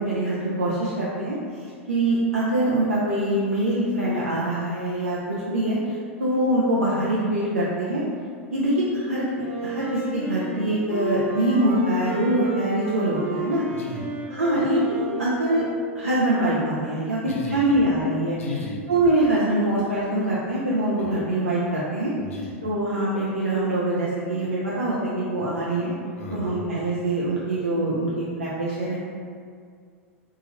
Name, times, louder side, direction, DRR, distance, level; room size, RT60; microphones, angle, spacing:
voice 1, 0.0-8.0 8.5-13.6 14.3-15.6 15.9-18.4 18.9-22.1 22.6-25.9 26.3-29.0, right 1 dB, 85° right, -8 dB, 0.4 m, -24 dB
Wind instrument woodwind instrument, 9.4-16.1, right 2 dB, 35° right, 1.0 m, -33 dB
voice 2, 13.7-14.0 17.3-17.6 18.4-18.8 21.0-21.1 22.2-22.5 26.1-26.6, left 2 dB, 75° left, -2 dB, 0.6 m, -35 dB
3.0 x 2.3 x 2.8 m, 2.1 s
figure-of-eight pair, 90°, 7 cm